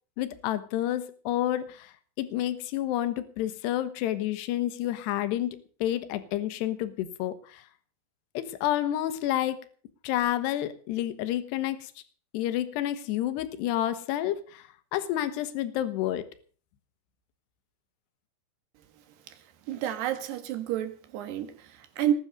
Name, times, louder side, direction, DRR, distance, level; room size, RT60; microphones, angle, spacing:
voice 1, 0.2-7.6 8.3-9.6 10.0-11.9 12.3-16.2, left 13 dB, 80° left, 12 dB, 3.3 m, -29 dB
voice 2, 19.7-22.1, right 11 dB, 75° right, 8 dB, 3.8 m, -30 dB
20.0 x 9.0 x 6.7 m, 0.43 s
omnidirectional pair, 5.0 m